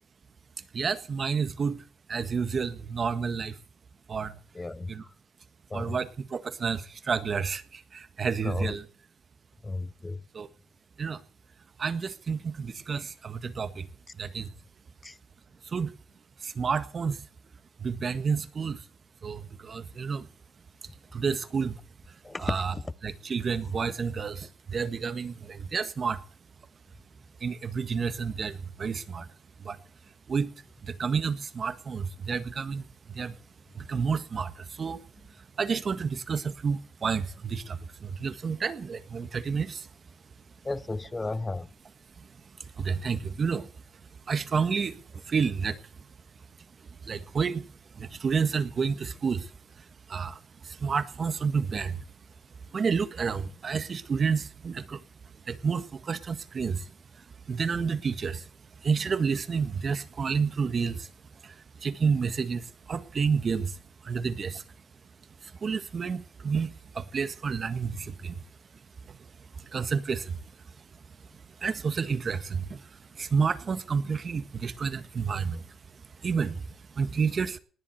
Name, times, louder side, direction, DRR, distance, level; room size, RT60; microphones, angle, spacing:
voice 1, 0.7-3.6 4.1-4.4 4.9-5.0 5.7-8.8 10.3-10.5 11.0-11.2 11.8-13.9 14.2-14.5 15.6-15.9 16.4-17.2 17.8-18.8 19.2-20.3 21.1-21.8 22.4-22.7 23.0-26.2 27.4-29.3 29.6-29.8 30.3-30.5 30.8-33.4 33.7-35.0 35.6-39.9 42.6-43.7 44.3-45.8 47.0-47.7 47.9-49.5 49.8-52.0 52.7-55.0 55.5-56.9 57.5-58.5 58.8-61.1 61.4-64.6 65.4-68.4 69.1-69.2 69.6-70.4 71.6-75.7 76.2-76.6 76.9-77.6, right 5 dB, 45° right, 1.6 m, -30 dB
voice 2, 4.5-4.9 5.7-5.9 8.4-8.8 9.6-10.2 15.0-15.2 22.2-22.8 40.6-41.7, left 2 dB, 20° left, 0.7 m, -33 dB
19.5 x 7.4 x 9.4 m
cardioid pair, 90°, 0 cm